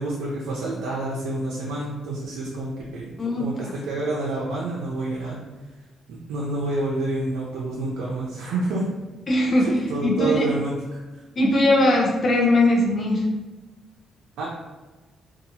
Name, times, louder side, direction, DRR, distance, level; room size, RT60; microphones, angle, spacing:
voice 1, 0.0-3.1 3.4-5.4 6.1-8.8 9.6-11.0 14.4-14.5, right 2 dB, 85° right, -4 dB, 0.4 m, -28 dB
voice 2, 9.3-9.7 10.0-10.5 11.4-13.3, left 1 dB, 40° left, -2 dB, 0.5 m, -20 dB
2.7 x 2.3 x 2.7 m, 1.2 s
cardioid pair, 90°, 0 cm